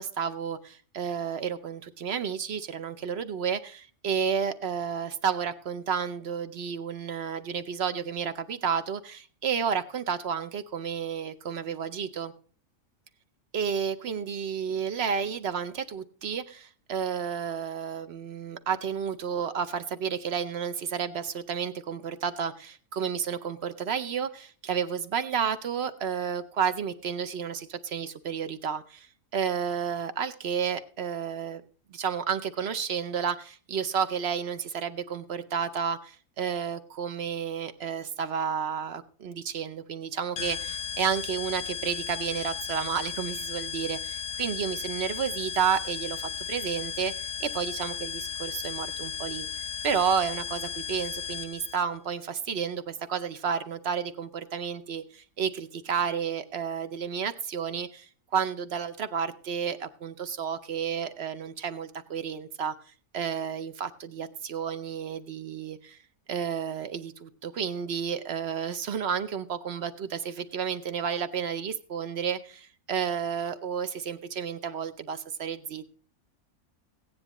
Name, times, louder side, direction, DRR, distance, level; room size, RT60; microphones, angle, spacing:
voice 1, 0.0-12.3 13.5-31.6 31.9-49.5 49.8-62.7 63.1-66.0 66.3-75.9, right 7 dB, 55° right, 0.8 m, -31 dB
sound 1, 40.4-51.8, left 7 dB, 60° left, 0.8 m, -35 dB
16.0 x 9.7 x 3.0 m
omnidirectional pair, 1.5 m